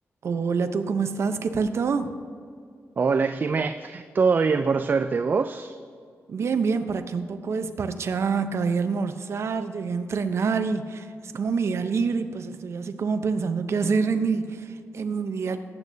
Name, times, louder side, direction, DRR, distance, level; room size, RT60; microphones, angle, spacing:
voice 1, 0.2-2.1 6.3-11.1 11.3-15.6, right 5 dB, 60° right, 8 dB, 0.7 m, -26 dB
voice 2, 3.0-5.8, right 5 dB, 40° right, 9 dB, 0.3 m, -23 dB
18.5 x 8.4 x 2.7 m, 2.3 s
wide cardioid pair, 130°, 5 cm